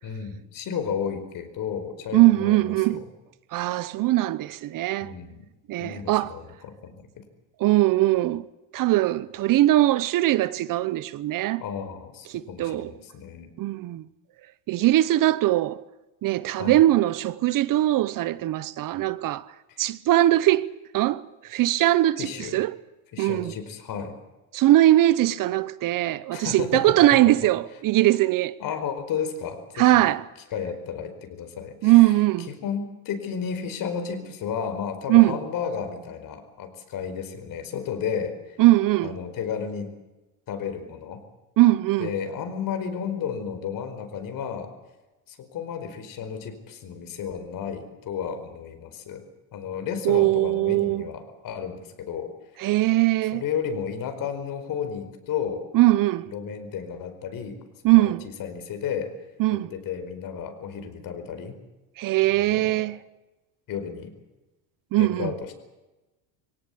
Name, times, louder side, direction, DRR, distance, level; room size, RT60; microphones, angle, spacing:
voice 1, 0.0-3.1 5.0-5.4 5.8-7.2 11.6-13.5 16.6-16.8 19.7-19.9 22.2-22.6 23.1-24.1 26.3-27.0 28.6-30.1 30.5-32.1 32.5-38.6 39.0-39.9 40.5-41.2 42.0-44.7 45.3-49.2 49.5-52.3 53.3-55.7 56.3-57.6 57.9-59.1 59.5-61.6 62.3-62.9 63.7-64.1 65.0-65.5, left 7 dB, 50° left, 4.9 m, -33 dB
voice 2, 2.1-3.0 3.5-5.1 5.7-6.4 7.6-8.4 8.7-11.6 12.3-12.9 13.6-14.0 14.7-15.8 16.2-19.5 19.8-22.8 23.2-23.5 24.5-28.5 29.8-30.3 31.8-32.5 35.1-35.4 38.6-39.1 41.6-42.1 50.0-51.1 52.6-53.4 55.7-56.3 57.8-58.3 59.4-59.7 62.0-63.0 64.9-65.3, right 16 dB, 50° right, 0.9 m, -21 dB
24.0 x 17.5 x 8.5 m
supercardioid pair, 120°, 44 cm